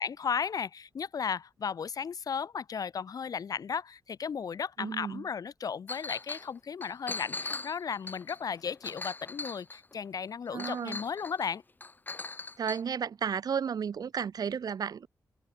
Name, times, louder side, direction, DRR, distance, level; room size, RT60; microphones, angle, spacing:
voice 1, 0.0-11.6, left 6 dB, 60° left, 3.4 m, -35 dB
voice 2, 4.8-5.2 10.5-11.0 12.6-15.1, right 7 dB, 65° right, 5.2 m, -33 dB
Chink clink, 5.9-6.5 6.8-9.9 10.6-11.5 11.8-12.8, left 3 dB, 25° left, 5.3 m, -40 dB
wide cardioid pair, 105°, 7 cm